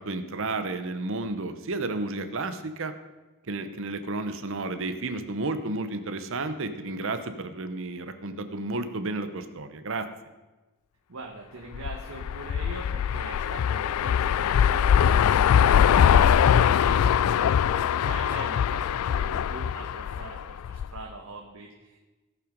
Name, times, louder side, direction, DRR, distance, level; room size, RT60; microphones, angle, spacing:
voice 1, 0.0-2.9 3.5-10.1, right 2 dB, 65° right, 9 dB, 0.9 m, -32 dB
voice 2, 11.1-22.1, right 3 dB, 85° right, 0 dB, 1.3 m, -43 dB
sound 1, 11.7-21.0, left 8 dB, 80° left, 0.3 m, -22 dB
17.5 x 5.9 x 5.2 m, 1.2 s
head